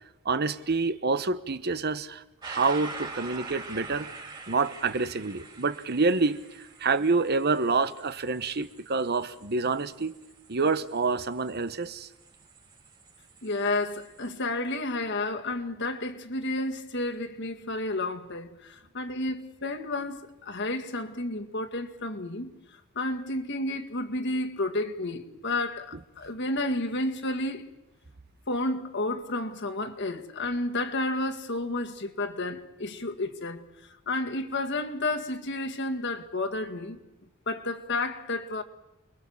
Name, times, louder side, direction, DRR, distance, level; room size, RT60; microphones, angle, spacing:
voice 1, 0.2-4.1 4.5-10.1 10.5-12.1, right 4 dB, 50° right, 1.1 m, -27 dB
sound 1, 2.4-14.3, right 4 dB, 20° right, 3.2 m, -45 dB
voice 2, 13.4-22.5 23.0-27.6 28.5-37.0 37.5-38.6, left 2 dB, 55° left, 2.0 m, -31 dB
29.0 x 22.0 x 7.2 m
head